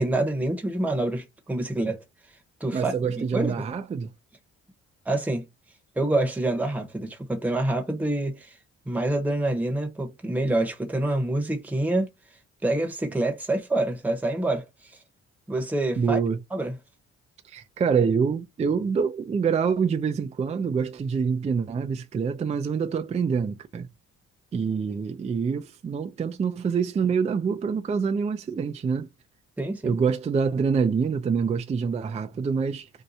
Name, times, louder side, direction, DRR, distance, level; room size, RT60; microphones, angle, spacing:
voice 1, 0.0-2.0 2.6-3.5 5.1-5.5 6.0-8.5 8.9-12.1 12.6-14.9 15.5-16.2 16.5-16.7 29.6-30.0, right 2 dB, 5° right, 0.8 m, -26 dB
voice 2, 2.7-4.1 16.0-16.4 17.4-23.9 24.5-29.1 29.8-32.9, right 6 dB, 25° right, 0.3 m, -26 dB
2.7 x 2.2 x 3.9 m
cardioid pair, 90°, 30 cm